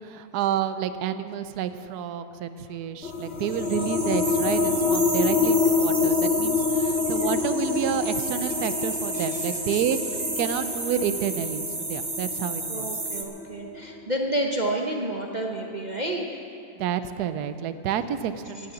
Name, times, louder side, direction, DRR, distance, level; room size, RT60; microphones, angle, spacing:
voice 1, 0.0-12.9 16.8-18.7, right 9 dB, 65° right, 11 dB, 1.0 m, -29 dB
sound 1, 3.0-14.2, left 5 dB, 85° left, 1.8 m, -27 dB
sound 2, 3.4-13.2, right 2 dB, 20° right, 1.0 m, -32 dB
voice 2, 9.1-9.5 9.7-9.8 12.7-16.2 18.6-18.7, right 1 dB, 40° right, 0 dB, 0.6 m, -30 dB
17.0 x 7.7 x 8.0 m, 2.7 s
omnidirectional pair, 2.1 m